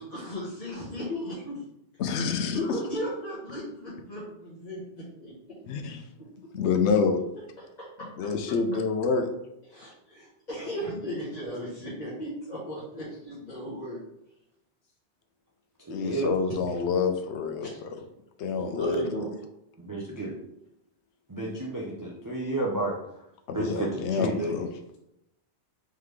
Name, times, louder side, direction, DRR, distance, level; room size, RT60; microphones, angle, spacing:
voice 1, 0.0-1.7 2.4-5.3 7.6-7.9 9.7-14.0 17.6-17.8 18.5-19.3, equal, 40° left, -8 dB, 1.2 m, -36 dB
voice 2, 2.0-2.8 5.7-6.0 6.5-7.2 8.2-9.3 15.9-17.9 18.4-19.1 23.5-24.7, left 5 dB, 80° left, 6 dB, 0.9 m, -27 dB
voice 3, 15.9-16.3 19.8-20.3 21.3-23.0 23.5-24.5, right 2 dB, 30° right, -3 dB, 0.4 m, -31 dB
3.7 x 3.3 x 3.2 m, 0.83 s
omnidirectional pair, 1.2 m